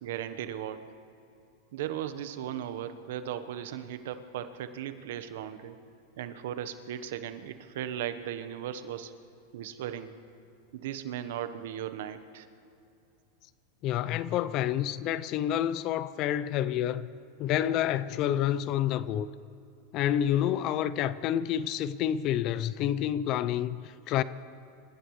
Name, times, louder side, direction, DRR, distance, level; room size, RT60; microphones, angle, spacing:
voice 1, 0.0-0.9 1.7-5.8 6.2-9.1 9.5-10.2 10.7-12.5, right 10 dB, 75° right, 1.1 m, -37 dB
voice 2, 13.8-17.1 17.4-19.3 19.9-24.2, left 11 dB, 45° left, 0.6 m, -28 dB
27.0 x 15.5 x 3.3 m
hypercardioid pair, 115°, 0 cm